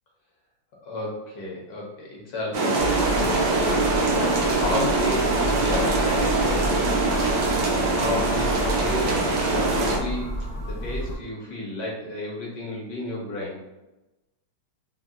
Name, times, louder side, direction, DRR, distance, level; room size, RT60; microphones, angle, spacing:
voice 1, 0.8-3.5 4.0-7.0 7.7-10.3 10.6-13.6, left 1 dB, 70° left, -3 dB, 0.9 m, -32 dB
sound 1, 2.5-10.0, right 3 dB, 80° right, 0.9 m, -23 dB
sound 2, 2.8-11.2, equal, 85° left, 0.4 m, -31 dB
3.5 x 2.0 x 2.4 m, 1.0 s
omnidirectional pair, 2.3 m